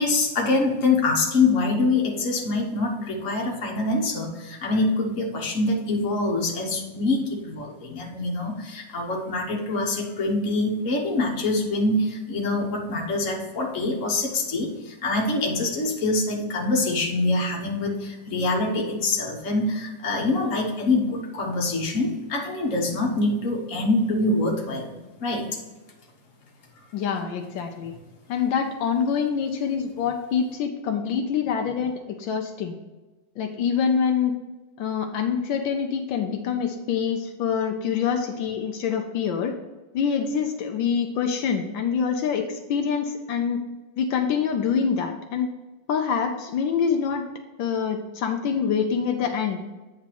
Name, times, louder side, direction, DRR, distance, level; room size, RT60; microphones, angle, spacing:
voice 1, 0.0-25.5, left 2 dB, 45° left, 0 dB, 1.6 m, -25 dB
voice 2, 26.9-27.9 28.3-32.8 33.4-34.3 34.8-39.5 39.9-43.6 44.0-45.5 45.9-47.2 47.6-49.6, left 6 dB, 80° left, 4 dB, 1.4 m, -25 dB
8.9 x 3.5 x 5.8 m, 1.2 s
omnidirectional pair, 2.1 m